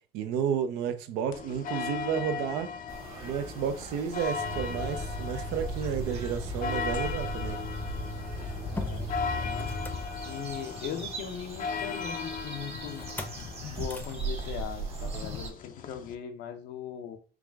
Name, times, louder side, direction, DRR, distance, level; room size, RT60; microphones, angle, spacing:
voice 1, 0.1-2.7 3.2-7.6, right 8 dB, 90° right, 0.6 m, -31 dB
sound 1, 1.3-16.2, left 5 dB, 55° left, 0.5 m, -38 dB
sound 2, 2.9-15.5, right 4 dB, 35° right, 1.1 m, -41 dB
Motor vehicle (road), 4.3-10.7 13.0-13.4 13.8-14.1, left 1 dB, 10° left, 0.6 m, -36 dB
voice 2, 8.6-9.7 10.3-13.1 13.7-17.2, left 8 dB, 85° left, 0.7 m, -39 dB
4.8 x 2.4 x 3.5 m
cardioid pair, 110°, 17 cm